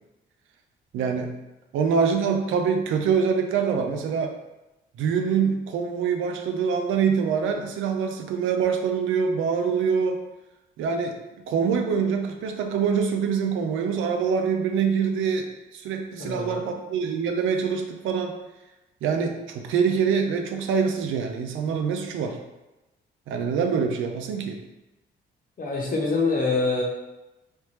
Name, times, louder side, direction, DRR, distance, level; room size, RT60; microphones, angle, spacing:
voice 1, 0.9-1.3 1.7-4.3 5.0-10.2 10.8-11.2 11.5-15.5 15.7-18.3 19.0-22.4 23.3-24.6, right 6 dB, 85° right, 4 dB, 0.5 m, -25 dB
voice 2, 16.2-16.6 25.6-26.8, left 3 dB, 45° left, -2 dB, 1.0 m, -25 dB
3.2 x 2.9 x 3.2 m, 1.0 s
cardioid pair, 90°, 20 cm